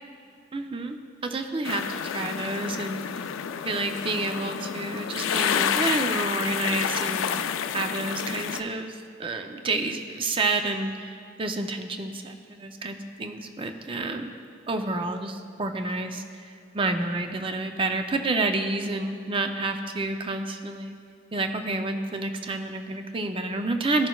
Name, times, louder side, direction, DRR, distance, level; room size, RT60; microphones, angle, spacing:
voice 1, 0.5-1.9 2.1-3.2 3.7-7.3 7.7-14.3 14.7-21.0 21.3-24.1, right 2 dB, 25° right, 6 dB, 0.5 m, -29 dB
sound 1, 1.6-8.6, left 8 dB, 80° left, 0.4 m, -29 dB
15.5 x 6.2 x 2.3 m, 2.5 s
head